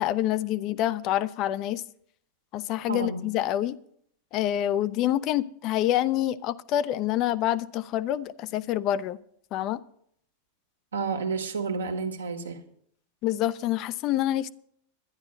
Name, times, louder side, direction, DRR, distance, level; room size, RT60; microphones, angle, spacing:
voice 1, 0.0-1.8 2.5-3.8 4.3-9.2 9.5-9.8 13.2-14.5, left 12 dB, 40° left, 0.4 m, -27 dB
voice 2, 2.9-3.2 10.9-12.6, right 5 dB, 70° right, 1.5 m, -30 dB
11.0 x 10.5 x 5.2 m
figure-of-eight pair, 90°, 0 cm